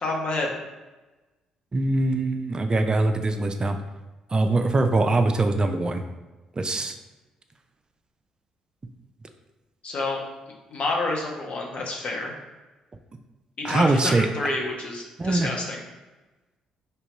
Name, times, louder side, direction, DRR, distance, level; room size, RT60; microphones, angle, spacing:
voice 1, 0.0-0.5 9.8-10.2 10.7-12.3 13.6-15.8, left 2 dB, 50° left, -1 dB, 1.1 m, -28 dB
voice 2, 1.7-3.8 4.3-6.0 6.6-6.9 13.6-14.3 15.2-15.5, right 2 dB, 30° right, 6 dB, 0.5 m, -22 dB
3.6 x 2.9 x 4.5 m, 1.2 s
hypercardioid pair, 50°, 3 cm